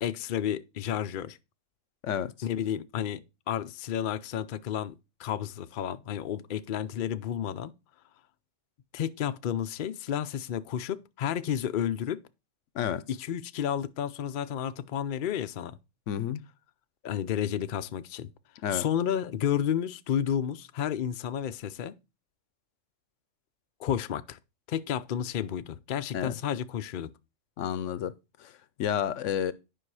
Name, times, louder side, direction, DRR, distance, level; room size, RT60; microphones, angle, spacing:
voice 1, 0.0-1.4 2.4-7.7 8.9-12.2 13.2-15.8 17.0-18.3 18.7-21.9 23.8-24.4 24.7-27.1, left 9 dB, 55° left, 0.6 m, -31 dB
voice 2, 16.1-16.4 18.6-18.8 26.1-26.4 27.6-28.1 28.4-29.5, left 9 dB, 80° left, 1.0 m, -30 dB
10.0 x 5.5 x 4.7 m
omnidirectional pair, 1.3 m